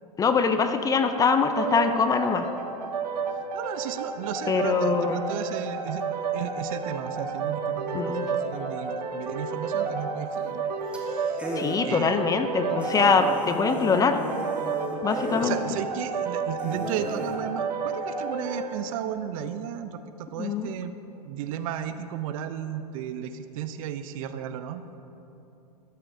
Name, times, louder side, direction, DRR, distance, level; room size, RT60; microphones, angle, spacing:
voice 1, 0.2-2.5 4.5-5.3 7.9-8.2 11.6-14.2 15.0-15.6 20.4-20.7, left 5 dB, 15° left, 8 dB, 0.5 m, -23 dB
sound 1, 1.3-18.8, right 5 dB, 90° right, 1.2 m, -31 dB
voice 2, 3.5-6.0 6.3-10.6 10.9-11.4 11.9-12.3 15.4-20.9 21.2-24.9, right 9 dB, 55° right, 10 dB, 0.6 m, -34 dB
sound 2, 10.3-10.6 10.9-11.0 11.4-11.8 12.3-12.4 12.8-15.6 16.1-16.2 16.6-17.4, right 1 dB, 5° right, 1.4 m, -35 dB
13.5 x 11.5 x 2.7 m, 2.9 s
hypercardioid pair, 115°, 21 cm